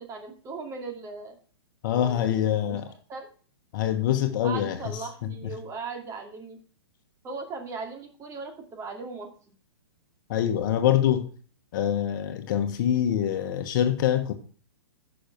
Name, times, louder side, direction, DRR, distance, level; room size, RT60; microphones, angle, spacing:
voice 1, 0.0-1.4 1.8-2.8 3.1-3.3 4.4-6.6 7.2-9.3, right 4 dB, 20° right, 2.5 m, -38 dB
voice 2, 1.8-2.9 3.7-5.5 10.3-11.3 11.7-14.3, left 10 dB, 50° left, 1.4 m, -25 dB
10.0 x 6.4 x 6.0 m
hypercardioid pair, 120°, 14 cm